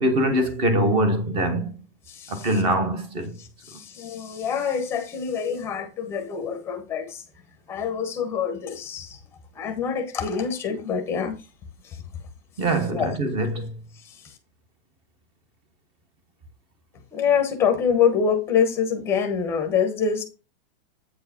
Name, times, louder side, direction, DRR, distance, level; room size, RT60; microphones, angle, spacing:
voice 1, 0.0-1.7 2.3-3.4 12.6-13.7, right 1 dB, 20° right, 1.1 m, -23 dB
voice 2, 2.1-2.6 3.4-7.2 7.7-9.2 9.5-11.4 11.8-12.0 12.9-13.2 13.9-14.4 17.1-20.2, left 7 dB, 10° left, 0.9 m, -26 dB
8.4 x 4.7 x 4.3 m
supercardioid pair, 180°, 30 cm